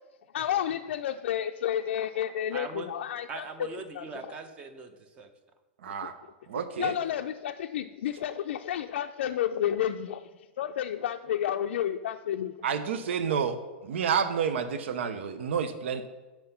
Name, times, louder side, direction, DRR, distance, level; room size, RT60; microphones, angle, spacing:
voice 1, 0.3-3.5 3.9-4.1 6.0-6.1 6.8-10.3 10.6-12.5, left 10 dB, 75° left, 5 dB, 0.4 m, -31 dB
voice 2, 2.5-2.9 3.3-5.3, right 4 dB, 20° right, 8 dB, 0.7 m, -40 dB
voice 3, 5.8-6.1 6.5-6.9 12.6-13.6 13.8-16.1, right 7 dB, 85° right, 10 dB, 0.6 m, -29 dB
7.7 x 4.4 x 5.6 m, 1.3 s
supercardioid pair, 165°, 6 cm